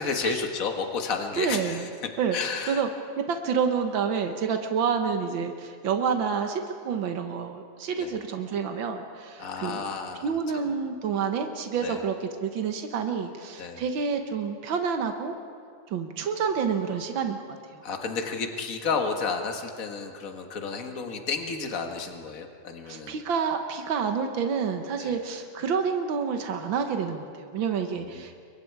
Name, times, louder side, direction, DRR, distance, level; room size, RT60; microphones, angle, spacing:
voice 1, 0.0-1.9 2.3-2.8 8.0-8.1 9.4-10.7 11.8-12.0 13.6-13.8 17.8-23.2 25.0-25.2 28.0-28.4, left 5 dB, 45° left, 4 dB, 1.1 m, -32 dB
voice 2, 1.4-1.9 2.2-2.4 2.7-2.9 3.3-9.9 10.2-15.3 15.9-17.8 22.9-28.4, right 6 dB, 85° right, 5 dB, 1.0 m, -28 dB
29.0 x 23.5 x 4.8 m, 2.2 s
omnidirectional pair, 3.9 m